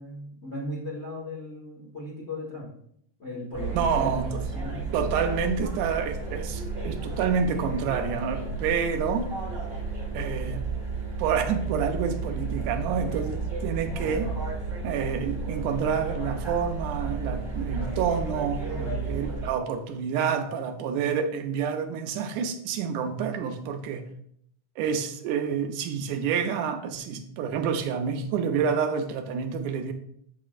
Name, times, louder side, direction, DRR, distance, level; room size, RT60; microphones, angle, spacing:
voice 1, 0.0-2.7 3.2-4.8 14.0-14.4 18.7-19.1, left 1 dB, 60° left, -5 dB, 0.6 m, -37 dB
sound 1, 3.5-19.5, right 4 dB, 50° right, 0.7 m, -32 dB
voice 2, 3.7-4.5 4.9-9.3 10.1-10.6 11.2-14.3 14.8-18.7 19.0-24.0 24.8-29.9, right 6 dB, 80° right, 6 dB, 2.0 m, -28 dB
7.3 x 5.7 x 2.4 m, 0.68 s
omnidirectional pair, 3.6 m